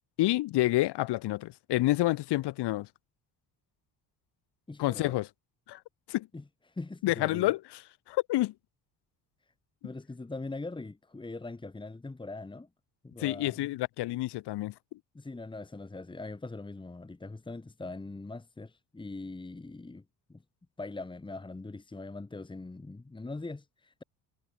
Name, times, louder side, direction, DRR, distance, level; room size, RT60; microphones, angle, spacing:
voice 1, 0.2-2.9 4.8-5.3 5.7-5.8 6.1-6.3 7.0-7.6 8.1-8.5 13.2-14.7, left 17 dB, 70° left, 1.3 m, -28 dB
voice 2, 4.7-5.2 6.3-7.5 9.8-12.7 13.0-13.7 15.1-20.0 20.3-20.4 20.8-24.0, left 3 dB, 10° left, 2.7 m, -42 dB
cardioid pair, 150°, 42 cm